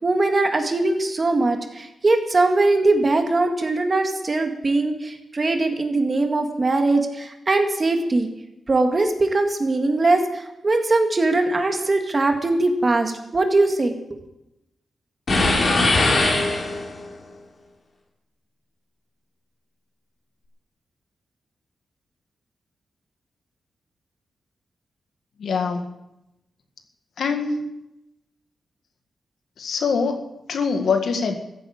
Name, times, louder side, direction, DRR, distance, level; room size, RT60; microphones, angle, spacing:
voice 1, 0.0-8.3 8.7-14.2, right 2 dB, 35° right, 5 dB, 2.0 m, -21 dB
sound 1, 15.3-17.1, left 2 dB, 50° left, 3.4 m, -20 dB
voice 2, 25.4-25.8 27.2-27.7 29.6-31.4, left 5 dB, 80° left, 5 dB, 1.8 m, -24 dB
14.5 x 8.9 x 8.6 m, 0.90 s
wide cardioid pair, 115°, 0 cm